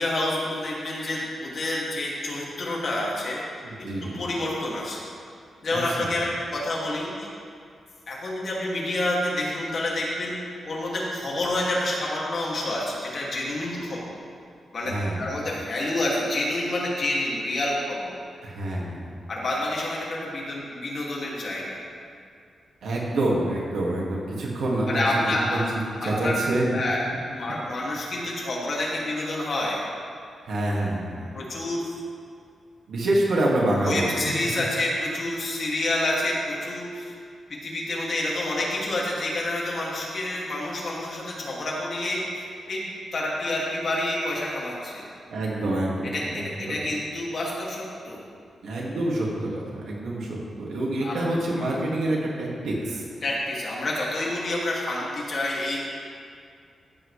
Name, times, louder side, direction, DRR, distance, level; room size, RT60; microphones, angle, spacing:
voice 1, 0.0-3.4 4.0-5.0 5.6-7.3 8.1-10.4 10.6-14.1 14.7-18.1 19.3-21.8 24.9-25.6 26.0-26.4 26.7-27.0 27.3-29.8 31.3-31.9 33.8-37.1 37.6-42.8 43.1-45.0 46.1-48.2 51.0-51.3 51.5-51.8 53.2-55.8, left 1 dB, 45° left, -4 dB, 2.3 m, -28 dB
voice 2, 3.6-4.1 5.7-6.1 14.8-15.2 18.4-19.1 22.8-25.0 25.5-25.6 26.0-26.7 30.4-31.4 32.9-34.6 45.3-46.8 48.6-53.0, right 1 dB, 80° right, -3 dB, 2.1 m, -27 dB
15.0 x 7.9 x 3.3 m, 2.3 s
wide cardioid pair, 145°, 0 cm